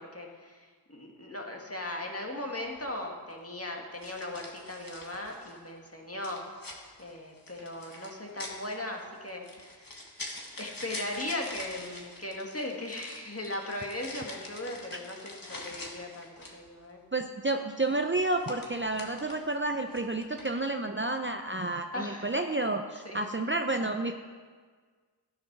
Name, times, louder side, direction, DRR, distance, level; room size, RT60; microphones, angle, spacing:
voice 1, 0.0-6.5 7.0-10.1 10.6-17.0 21.9-22.3 23.1-23.3, left 1 dB, 30° left, 0 dB, 1.9 m, -38 dB
sound 1, 2.7-2.9 4.0-5.7 6.2-16.7 17.9-19.6 19.9-20.6, left 2 dB, 50° left, 1.7 m, -45 dB
voice 2, 17.1-24.1, right 2 dB, 25° right, 5 dB, 0.6 m, -30 dB
12.5 x 7.4 x 6.1 m, 1.6 s
wide cardioid pair, 40°, 43 cm